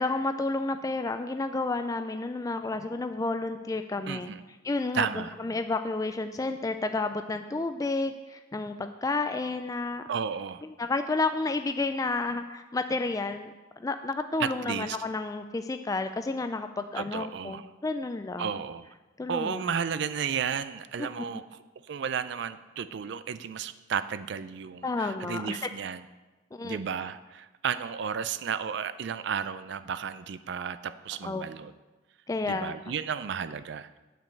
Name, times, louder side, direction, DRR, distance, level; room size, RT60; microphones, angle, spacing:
voice 1, 0.0-4.3 4.6-10.0 10.8-18.5 19.2-19.7 21.0-21.5 24.8-25.6 26.5-26.8 31.2-31.4 32.3-32.7, left 3 dB, 20° left, 8 dB, 0.3 m, -31 dB
voice 2, 4.1-4.4 4.9-5.3 10.1-10.6 14.4-15.0 17.0-17.7 18.4-18.9 19.3-21.6 21.9-26.1 26.6-31.7 32.4-34.0, right 7 dB, 60° right, 14 dB, 0.4 m, -33 dB
8.9 x 5.2 x 7.7 m, 1.1 s
head